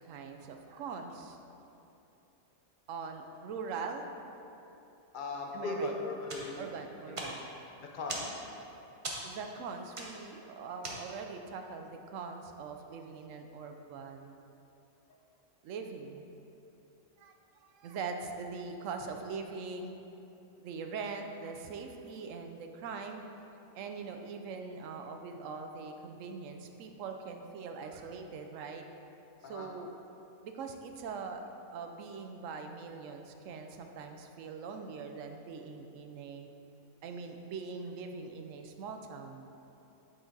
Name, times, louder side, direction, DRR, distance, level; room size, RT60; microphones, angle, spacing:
voice 1, 0.0-1.4 2.9-4.1 5.5-5.9 6.6-7.4 9.2-14.4 15.6-16.3 17.2-20.0 20.6-23.2 23.7-28.8 29.5-29.9 30.4-31.4 31.7-36.5 37.0-39.5, right 5 dB, 70° right, 5 dB, 0.9 m, -42 dB
voice 2, 5.1-6.8 7.1-7.2 7.8-8.3 29.4-29.7, left 2 dB, 45° left, 0 dB, 0.8 m, -38 dB
sound 1, 6.2-11.4, right 1 dB, 30° right, 0.6 m, -43 dB
8.6 x 4.5 x 3.9 m, 2.8 s
omnidirectional pair, 1.4 m